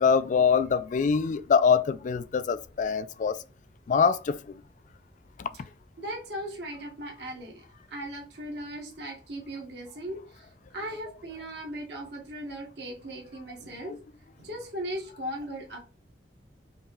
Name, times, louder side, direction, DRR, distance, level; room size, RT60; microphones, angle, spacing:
voice 1, 0.0-3.4 3.9-4.6 13.9-14.0, left 6 dB, 45° left, 0.3 m, -24 dB
voice 2, 6.0-13.9 14.4-15.8, right 1 dB, 65° right, 1.3 m, -38 dB
5.3 x 2.8 x 2.3 m
head